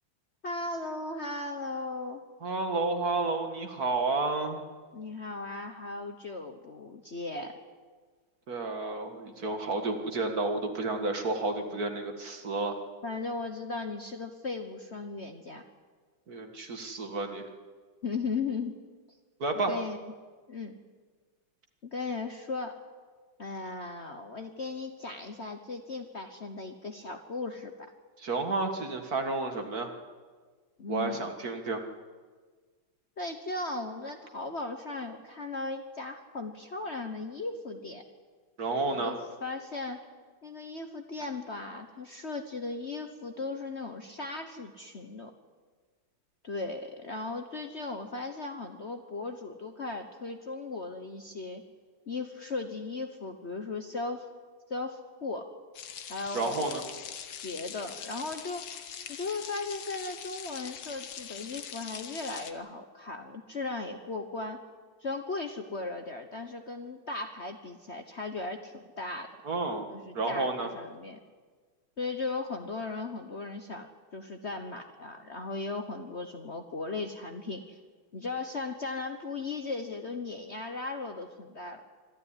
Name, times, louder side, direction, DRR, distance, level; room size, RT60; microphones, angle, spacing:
voice 1, 0.4-2.2 4.9-7.5 13.0-15.6 18.0-18.8 19.5-20.1 20.5-20.7 21.8-22.8 23.4-27.9 30.8-31.3 33.2-38.0 38.9-40.0 40.4-45.3 46.4-51.6 52.1-54.3 54.7-55.5 56.1-56.9 57.4-58.6 59.1-64.6 65.0-69.3 69.9-71.2 72.0-77.8 78.1-81.8, left 3 dB, 40° left, 6 dB, 1.2 m, -37 dB
voice 2, 2.4-4.6 8.5-12.8 16.3-17.4 19.4-19.8 28.2-29.9 30.9-31.8 38.6-39.1 56.3-56.8 69.4-69.9 70.1-70.7, right 3 dB, 50° right, 5 dB, 2.2 m, -31 dB
sound 1, 55.7-62.5, left 8 dB, 70° left, 1.8 m, -43 dB
25.5 x 13.0 x 9.9 m, 1.5 s
omnidirectional pair, 2.1 m